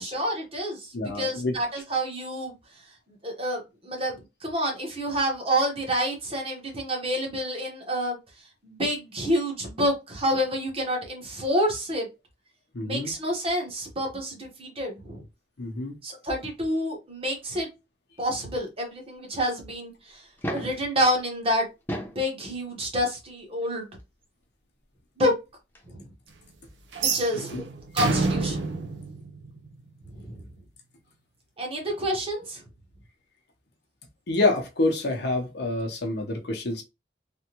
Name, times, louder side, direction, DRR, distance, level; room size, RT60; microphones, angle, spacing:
voice 1, 0.0-2.5 3.1-8.2 8.6-12.1 12.8-15.2 16.0-17.7 18.2-20.3 20.5-21.7 22.0-23.9 25.2-25.3 25.8-26.0 27.0-28.9 30.1-30.4 31.6-32.6, equal, 35° right, 1.0 m, -28 dB
voice 2, 0.9-1.5 12.7-13.1 15.6-16.0 27.5-27.6 34.3-36.8, left 2 dB, 65° left, 0.7 m, -27 dB
sound 1, 20.2-20.8 21.7-22.3 23.6-23.7 25.5-25.6 25.8-25.9, equal, 10° left, 0.7 m, -33 dB
sound 2, 26.9-30.0, right 4 dB, 90° right, 0.6 m, -28 dB
3.4 x 2.2 x 2.9 m
head